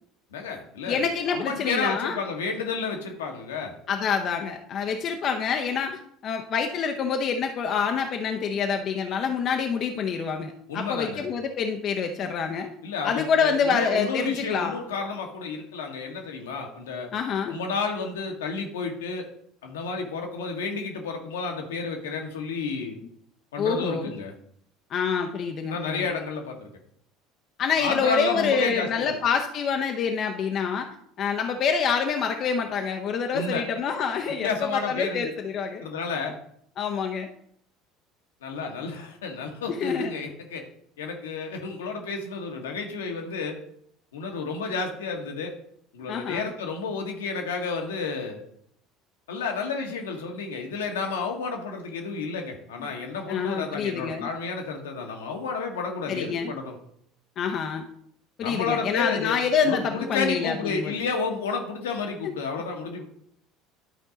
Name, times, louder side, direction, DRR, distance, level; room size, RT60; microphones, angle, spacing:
voice 1, 0.3-3.7 10.7-11.3 12.8-17.1 17.5-19.3 19.6-23.0 23.5-24.3 25.7-26.7 27.8-29.2 33.3-33.6 34.4-35.3 35.8-36.4 38.4-40.6 41.0-43.6 44.1-45.5 45.9-48.4 49.3-56.7 58.4-63.0, left 4 dB, 75° left, 2 dB, 1.3 m, -31 dB
voice 2, 0.9-2.2 3.9-12.7 13.0-14.8 17.1-17.6 23.6-24.1 24.9-26.0 27.6-30.9 31.2-35.8 36.8-37.3 39.7-40.2 46.1-46.5 52.8-52.9 53.3-54.3 56.1-56.5 57.4-57.8 58.4-59.8 60.1-60.9, left 6 dB, 45° left, 4 dB, 0.7 m, -27 dB
11.0 x 4.5 x 3.9 m, 0.69 s
figure-of-eight pair, 65°, 0 cm